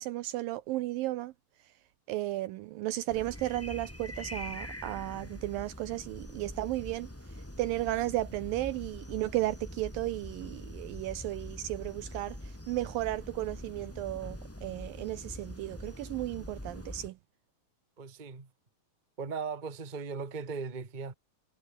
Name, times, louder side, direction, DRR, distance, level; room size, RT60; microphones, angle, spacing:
voice 1, 0.0-1.3 2.1-7.1 7.6-17.2, right 16 dB, 80° right, 2.2 m, -34 dB
sound 1, 3.1-17.1, left 1 dB, 5° left, 2.2 m, -44 dB
voice 2, 18.0-18.5 19.2-21.1, right 5 dB, 25° right, 1.0 m, -38 dB
omnidirectional pair, 4.5 m